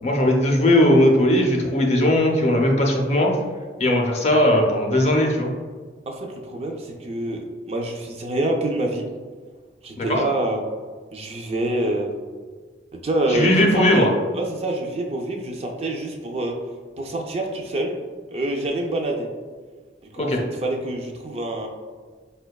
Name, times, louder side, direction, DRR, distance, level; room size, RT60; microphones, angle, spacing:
voice 1, 0.0-3.4 3.8-5.5 10.0-10.2 13.3-14.1 20.2-20.4, left 1 dB, 40° left, 0 dB, 0.5 m, -18 dB
voice 2, 6.1-9.1 9.8-10.6 11.1-12.1 12.9-16.5 17.0-18.0 18.3-19.3 20.1-20.3 20.6-21.7, right 1 dB, 35° right, 1 dB, 0.3 m, -26 dB
4.9 x 2.2 x 2.2 m, 1.5 s
head